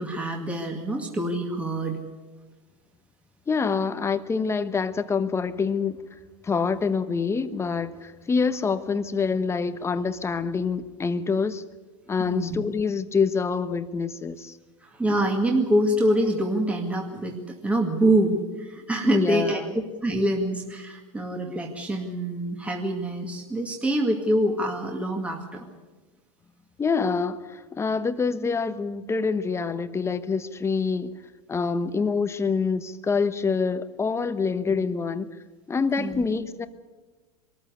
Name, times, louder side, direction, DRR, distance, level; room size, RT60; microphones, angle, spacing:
voice 1, 0.0-2.0 12.2-12.6 14.8-25.6 36.0-36.2, right 1 dB, 5° right, 1 dB, 2.1 m, -25 dB
voice 2, 3.5-6.0 6.4-11.6 12.1-14.6 19.0-19.7 26.8-31.1 31.5-35.3 35.7-36.7, left 5 dB, 15° left, 11 dB, 1.1 m, -26 dB
22.5 x 14.0 x 9.6 m, 1.3 s
supercardioid pair, 120°, 17 cm